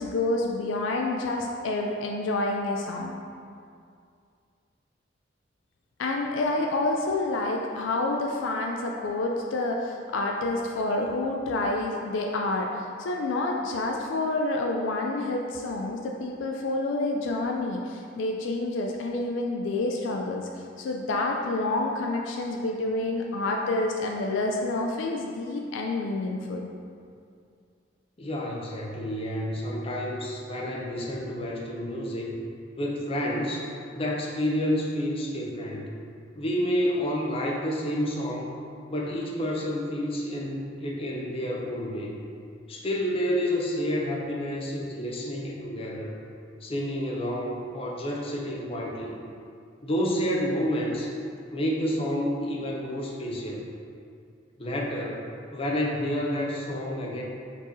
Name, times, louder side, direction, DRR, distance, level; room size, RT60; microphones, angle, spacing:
voice 1, 0.0-3.2 6.0-20.5 20.8-26.7, left 2 dB, 80° left, 1 dB, 0.4 m, -28 dB
voice 2, 28.2-32.3 32.8-33.6 33.9-35.9 36.4-38.6 38.9-42.2 42.7-46.1 46.6-49.2 49.8-51.1 51.5-53.7 54.6-57.2, equal, 30° left, -2 dB, 0.6 m, -29 dB
4.4 x 3.0 x 4.0 m, 2.3 s
head